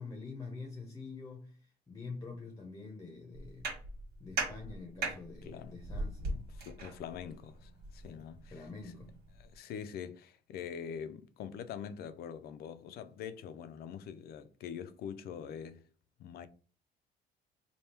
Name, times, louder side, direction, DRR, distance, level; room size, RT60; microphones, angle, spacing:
voice 1, 0.0-3.7 4.2-6.4 8.5-9.2, left 4 dB, 20° left, 0.8 m, -46 dB
sound 1, 3.3-9.6, right 3 dB, 75° right, 1.6 m, -41 dB
voice 2, 5.4-5.8 6.3-8.9 9.4-15.8 16.2-16.5, left 8 dB, 65° left, 0.5 m, -44 dB
3.5 x 2.3 x 4.3 m
cardioid pair, 110°, 17 cm